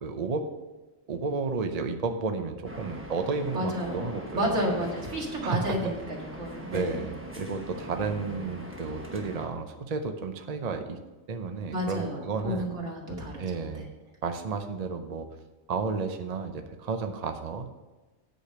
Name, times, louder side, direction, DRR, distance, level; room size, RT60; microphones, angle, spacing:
voice 1, 0.0-0.5 1.1-4.9 5.4-5.8 6.7-11.0 11.3-12.7 13.4-13.9 14.2-15.3 15.7-17.7, right 4 dB, 45° right, 6 dB, 0.6 m, -32 dB
sound 1, 2.6-9.5, equal, 10° right, 1.0 m, -41 dB
voice 2, 3.5-4.0 4.3-7.1 11.7-13.4 13.7-13.9, equal, 65° right, -2 dB, 2.3 m, -31 dB
9.0 x 5.0 x 6.7 m, 1.2 s
omnidirectional pair, 1.3 m